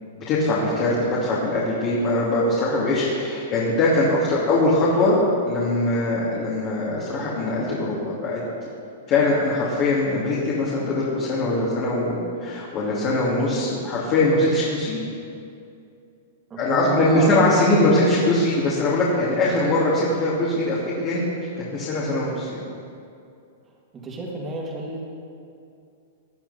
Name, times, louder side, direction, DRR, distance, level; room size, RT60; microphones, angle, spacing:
voice 1, 0.3-5.2 5.4-8.4 9.1-15.0 16.6-21.2 21.7-22.6, left 2 dB, 35° left, -7 dB, 2.7 m, -22 dB
voice 2, 16.5-17.3 17.6-17.9 18.2-18.4 24.0-25.0, right 1 dB, 20° right, -2 dB, 2.5 m, -29 dB
18.0 x 10.5 x 4.2 m, 2.5 s
hypercardioid pair, 150°, 0 cm